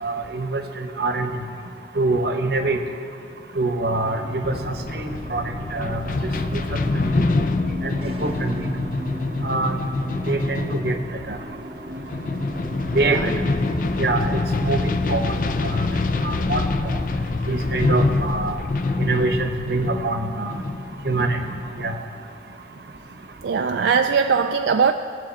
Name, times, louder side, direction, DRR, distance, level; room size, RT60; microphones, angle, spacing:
voice 1, 0.0-0.6 1.0-1.3 2.0-2.8 3.6-5.4 5.7-6.0 6.5-6.6 7.2-7.3 8.2-8.5 9.4-9.8 10.3-10.9 11.3-11.4 12.9-13.3 14.0-15.2 16.2-16.6 17.5-18.6 19.0-20.5 21.0-21.4 21.8-21.9, right 2 dB, 65° right, 6 dB, 1.0 m, -24 dB
sound 1, 4.0-18.7, right 1 dB, 30° right, 0.6 m, -38 dB
sound 2, 4.4-21.9, left 3 dB, 50° left, 0.5 m, -25 dB
voice 2, 23.4-24.9, right 6 dB, 85° right, 5 dB, 0.4 m, -20 dB
20.0 x 7.4 x 4.3 m, 2.3 s
head